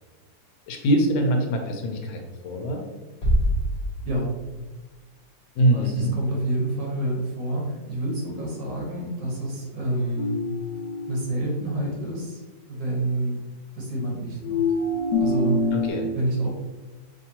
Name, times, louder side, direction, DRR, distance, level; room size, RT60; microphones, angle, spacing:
voice 1, 0.7-2.8 5.6-6.1 15.7-16.1, right 1 dB, 85° left, 3 dB, 1.5 m, -23 dB
sound 1, 3.2-5.2, equal, 50° left, 0.9 m, -25 dB
voice 2, 4.0-4.4 5.7-10.4 11.1-12.4 12.7-13.4 13.7-14.7 15.2-15.7 16.1-16.5, right 1 dB, 70° right, -2 dB, 1.9 m, -28 dB
sound 2, 10.2-11.5 14.4-15.9, left 3 dB, 65° left, 0.5 m, -25 dB
5.7 x 2.6 x 2.9 m, 1.2 s
omnidirectional pair, 2.1 m